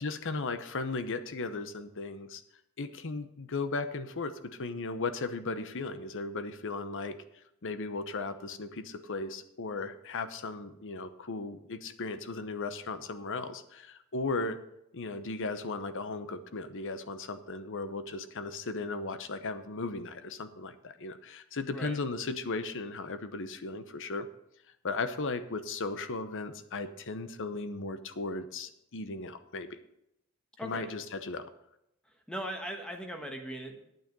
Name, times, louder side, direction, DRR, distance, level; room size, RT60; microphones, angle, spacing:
voice 1, 0.0-2.4 2.8-7.2 7.6-14.6 14.9-24.3 24.8-29.8 30.6-31.5, left 3 dB, 60° left, 11 dB, 0.9 m, -36 dB
voice 2, 30.6-30.9 32.3-33.8, equal, 5° left, 4 dB, 1.3 m, -39 dB
9.2 x 9.1 x 5.3 m, 0.81 s
head